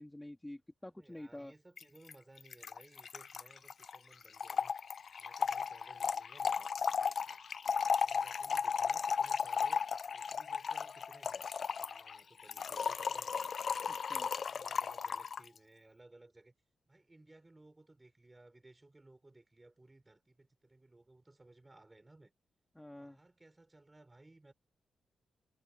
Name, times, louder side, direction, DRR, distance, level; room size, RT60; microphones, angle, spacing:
voice 1, 0.0-1.5 13.9-14.3 22.8-23.2, left 1 dB, 10° left, 2.2 m, -48 dB
voice 2, 0.8-4.7 5.2-7.4 8.0-9.9 10.1-11.5 11.8-13.7 14.3-16.5 16.9-22.3 23.0-24.5, right 2 dB, 20° right, 6.7 m, -61 dB
Trickle dribble / Fill (with liquid), 1.8-1.9 2.1-2.2 2.4-15.5, left 6 dB, 55° left, 0.5 m, -35 dB
cardioid pair, 105°, 0 cm